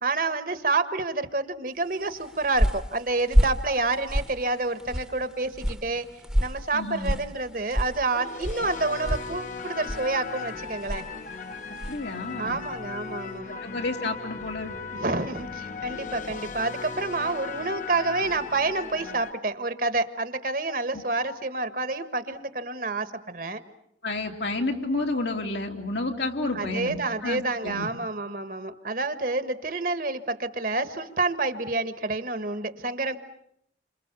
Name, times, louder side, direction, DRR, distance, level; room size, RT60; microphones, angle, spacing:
voice 1, 0.0-6.1 6.4-11.0 12.4-13.6 14.9-23.6 26.5-33.2, right 3 dB, 50° right, 11 dB, 1.4 m, -28 dB
sound 1, 2.0-12.1, equal, 5° right, 1.1 m, -30 dB
sound 2, 5.8-7.0 7.7-19.3, left 5 dB, 45° left, 1.1 m, -38 dB
voice 2, 6.7-7.1 11.9-12.6 13.6-14.8 24.0-27.9, left 2 dB, 75° left, 2 dB, 3.1 m, -30 dB
29.0 x 27.0 x 6.9 m, 0.72 s
head